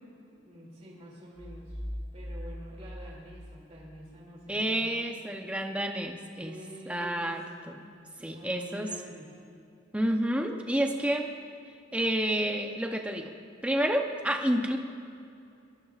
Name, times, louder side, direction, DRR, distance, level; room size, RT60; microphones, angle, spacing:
voice 1, 0.3-1.8 2.1-4.8 6.4-7.8 8.1-9.4, equal, 35° right, -4 dB, 2.7 m, -47 dB
sound 1, 1.4-4.0, equal, 15° left, 3.4 m, -41 dB
voice 2, 4.5-6.5 6.9-7.4 7.7-7.8 8.2-8.9 9.9-11.3 11.9-13.3 13.6-14.8, right 1 dB, 5° right, 3 dB, 0.7 m, -29 dB
22.0 x 19.0 x 2.4 m, 2.6 s
head